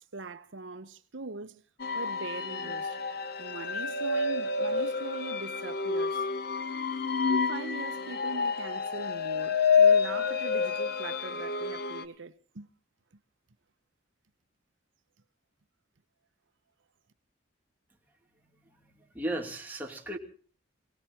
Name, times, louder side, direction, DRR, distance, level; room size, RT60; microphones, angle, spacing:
voice 1, 0.0-1.6 1.9-3.0 3.4-6.3 7.3-12.7, right 3 dB, 75° right, 0.9 m, -41 dB
sound 1, 1.8-12.0, left 5 dB, 50° left, 1.0 m, -28 dB
voice 2, 18.4-20.2, right 1 dB, 10° right, 2.8 m, -37 dB
27.0 x 18.0 x 2.9 m
head